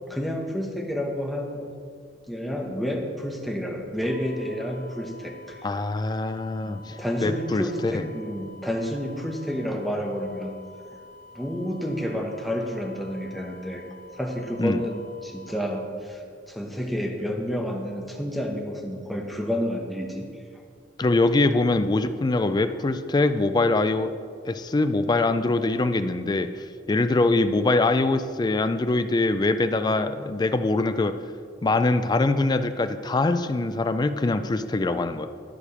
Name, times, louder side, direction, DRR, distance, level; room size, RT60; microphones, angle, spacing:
voice 1, 0.1-1.6 2.3-5.6 6.6-10.5 11.3-13.8 14.1-20.3, equal, ahead, 0 dB, 1.0 m, -30 dB
sound 1, 4.1-15.8, left 3 dB, 80° right, 2.3 m, -49 dB
voice 2, 5.6-7.0 7.2-8.1 14.6-14.8 21.0-24.1 24.4-31.1 31.6-35.3, left 2 dB, 20° left, 10 dB, 0.3 m, -23 dB
11.0 x 4.9 x 4.9 m, 2.2 s
head